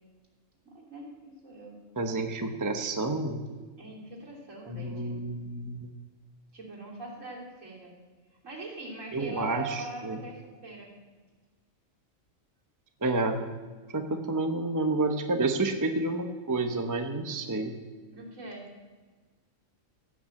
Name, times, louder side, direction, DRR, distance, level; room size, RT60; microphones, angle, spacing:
voice 1, 0.6-1.8 3.8-5.2 6.5-7.9 8.4-10.9 18.1-18.7, right 2 dB, 65° right, -3 dB, 3.6 m, -42 dB
voice 2, 2.0-3.4 4.7-5.9 9.1-10.2 13.0-13.4 13.9-17.8, right 2 dB, 15° right, 6 dB, 0.8 m, -29 dB
16.5 x 6.0 x 8.5 m, 1.4 s
omnidirectional pair, 1.4 m